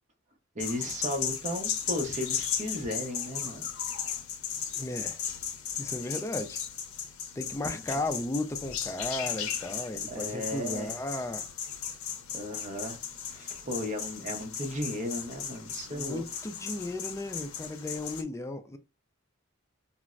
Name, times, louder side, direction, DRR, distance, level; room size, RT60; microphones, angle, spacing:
voice 1, 0.5-3.7 7.6-7.8 10.1-10.9 12.3-13.0 13.3-16.2, left 1 dB, 35° right, 0.7 m, -35 dB
sound 1, 0.6-18.2, left 8 dB, 80° left, 0.6 m, -36 dB
voice 2, 4.7-5.2 5.8-6.6 7.4-11.4 15.9-18.8, left 2 dB, 15° left, 0.3 m, -35 dB
4.1 x 2.0 x 2.4 m
head